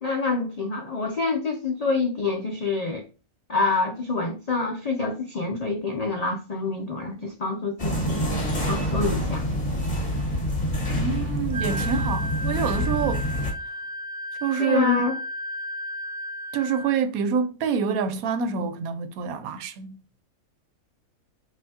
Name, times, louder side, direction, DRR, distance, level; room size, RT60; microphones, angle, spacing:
voice 1, 0.0-3.0 3.5-8.4 8.7-9.5 14.6-15.2, left 3 dB, 70° left, 0.3 m, -27 dB
sound 1, 7.8-13.5, equal, 30° left, 1.4 m, -26 dB
voice 2, 10.9-13.2 14.4-15.0 16.5-20.0, right 5 dB, 80° right, 1.0 m, -26 dB
Wind instrument woodwind instrument, 11.5-17.0, equal, 50° right, 1.0 m, -34 dB
5.6 x 2.6 x 2.7 m
omnidirectional pair, 1.5 m